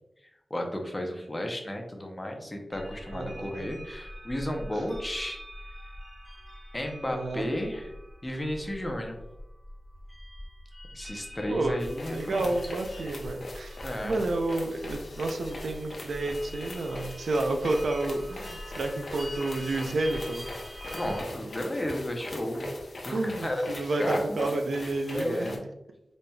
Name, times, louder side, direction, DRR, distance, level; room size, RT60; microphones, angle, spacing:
voice 1, 0.5-5.4 6.7-8.0 8.2-9.2 10.9-12.5 13.8-14.2 20.9-22.7 23.0-23.7 24.0-24.6 25.1-25.6, left 1 dB, 15° left, 2 dB, 0.6 m, -33 dB
sound 1, 2.7-21.2, equal, 20° right, 1.2 m, -44 dB
voice 2, 3.1-3.7 7.1-7.5 11.5-11.8 12.1-13.8 14.0-20.5 21.0-21.1 23.1-25.6, right 2 dB, 70° right, 4 dB, 0.4 m, -30 dB
sound 2, 11.8-25.6, left 1 dB, 55° left, 0.7 m, -42 dB
4.1 x 3.2 x 2.2 m, 0.90 s
wide cardioid pair, 135°, 0 cm